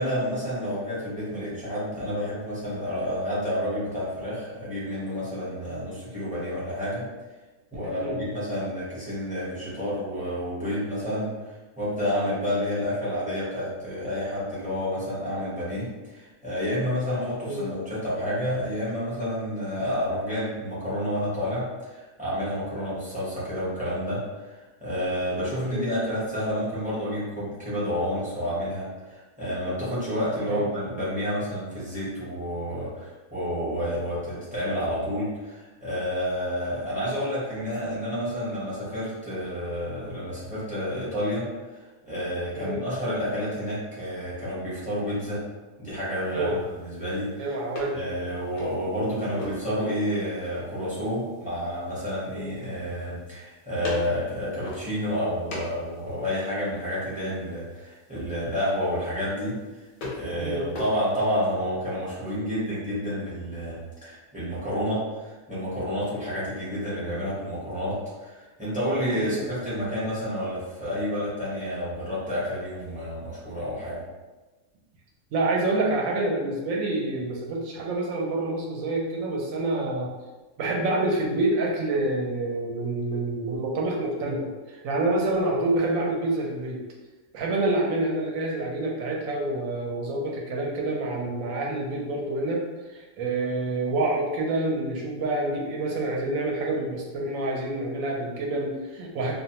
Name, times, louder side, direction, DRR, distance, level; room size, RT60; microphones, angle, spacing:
voice 1, 0.0-7.0 7.7-11.3 11.8-41.4 42.0-45.4 45.8-46.6 46.8-47.5 47.9-59.5 60.1-74.0, equal, 10° right, -10 dB, 0.6 m, -29 dB
voice 2, 7.7-8.2 17.4-17.6 25.7-25.8 30.5-30.6 42.6-42.8 46.3-46.6 47.4-48.0 52.3-52.4 60.4-60.6 69.2-69.4 75.3-80.1 80.6-86.8 87.3-92.7 92.9-99.4, right 2 dB, 70° right, -1 dB, 0.9 m, -27 dB
sound 1, 46.0-61.5, left 2 dB, 55° left, 0.6 m, -43 dB
2.4 x 2.1 x 2.8 m, 1.2 s
omnidirectional pair, 1.5 m